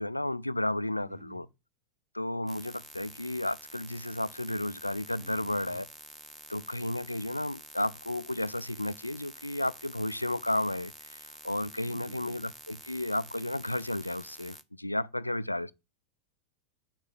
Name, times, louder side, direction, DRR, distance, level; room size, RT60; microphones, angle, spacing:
voice 1, 0.0-1.5 2.1-5.8 6.5-15.7, left 1 dB, 85° left, 0.4 m, -33 dB
voice 2, 1.0-1.4 5.2-5.8 11.8-12.4, right 4 dB, 45° right, 3.9 m, -51 dB
sound 1, 2.5-14.6, right 2 dB, 10° right, 0.8 m, -49 dB
6.9 x 6.5 x 7.3 m
figure-of-eight pair, 90°, 0 cm